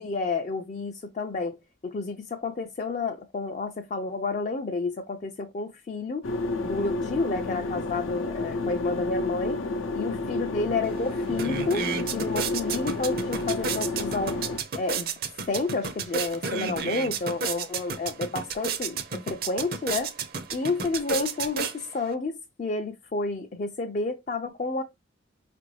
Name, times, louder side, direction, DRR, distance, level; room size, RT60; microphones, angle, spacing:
voice 1, 0.0-6.3 6.6-9.6 9.9-14.4 14.7-15.1 15.5-20.1 20.5-24.8, left 3 dB, 40° left, 0.4 m, -30 dB
sound 1, 6.2-14.6, left 2 dB, 85° left, 0.6 m, -30 dB
sound 2, 10.8-10.9 11.2-22.1, right 5 dB, 50° right, 0.5 m, -32 dB
5.2 x 2.5 x 3.2 m
head